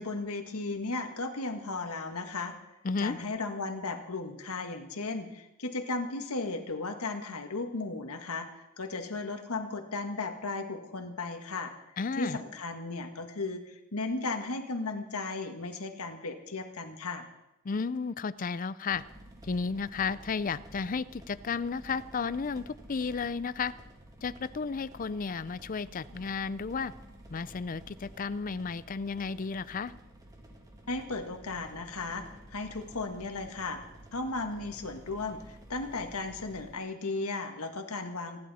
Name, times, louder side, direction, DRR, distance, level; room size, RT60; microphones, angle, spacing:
voice 1, 0.0-2.6 3.0-11.7 12.2-17.3 30.9-33.8 34.1-38.4, left 3 dB, 90° left, 6 dB, 1.7 m, -35 dB
voice 2, 2.8-3.2 12.0-12.4 17.6-19.0 19.4-23.7 24.2-26.9 27.3-29.9, left 5 dB, 40° left, 17 dB, 0.4 m, -33 dB
sound 1, 18.9-36.7, equal, 15° right, 1.9 m, -51 dB
27.0 x 11.5 x 4.2 m, 0.94 s
head